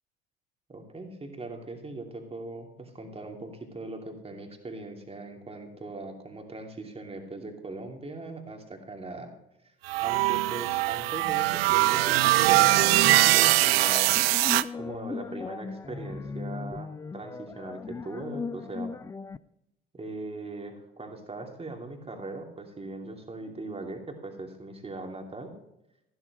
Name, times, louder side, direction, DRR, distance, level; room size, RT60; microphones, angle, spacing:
voice 1, 0.7-9.3 10.0-14.1 14.8-18.9 19.9-25.5, right 2 dB, 20° right, 3 dB, 2.8 m, -40 dB
sound 1, 9.9-14.6, right 17 dB, 70° right, 0.5 m, -22 dB
sound 2, 12.2-19.4, left 4 dB, 10° left, 0.3 m, -38 dB
14.0 x 12.5 x 3.1 m, 0.84 s
figure-of-eight pair, 60°, 31 cm